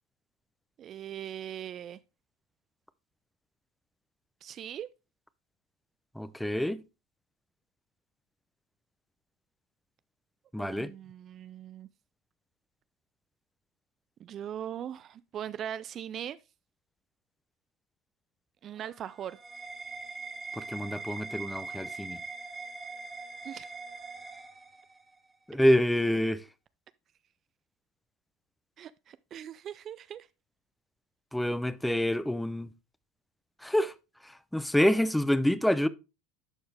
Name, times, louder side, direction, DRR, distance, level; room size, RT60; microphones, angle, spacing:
voice 1, 0.8-2.0 4.4-4.9 10.6-11.9 14.2-16.4 18.6-19.4 23.4-23.7 28.8-30.3, right 10 dB, 40° right, 0.3 m, -40 dB
voice 2, 6.2-6.8 10.5-10.9 20.5-22.2 25.5-26.4 31.3-32.7 33.6-33.9 34.2-35.9, left 1 dB, 5° left, 0.6 m, -27 dB
sound 1, 18.7-25.1, right 3 dB, 15° right, 1.2 m, -42 dB
11.5 x 4.3 x 3.3 m
hypercardioid pair, 90°, 0 cm